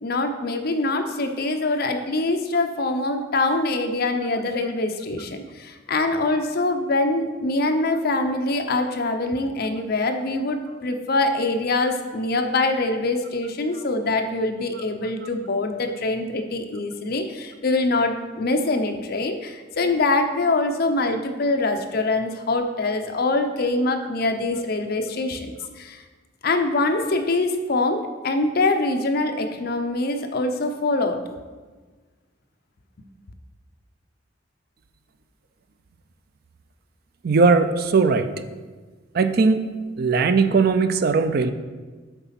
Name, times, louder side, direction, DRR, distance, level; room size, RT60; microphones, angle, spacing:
voice 1, 0.0-26.0 26.4-31.2, left 2 dB, 55° left, 6 dB, 0.7 m, -24 dB
voice 2, 37.2-38.3 39.1-39.7 40.0-41.5, right 4 dB, 55° right, 10 dB, 0.5 m, -19 dB
8.1 x 4.0 x 5.8 m, 1.4 s
head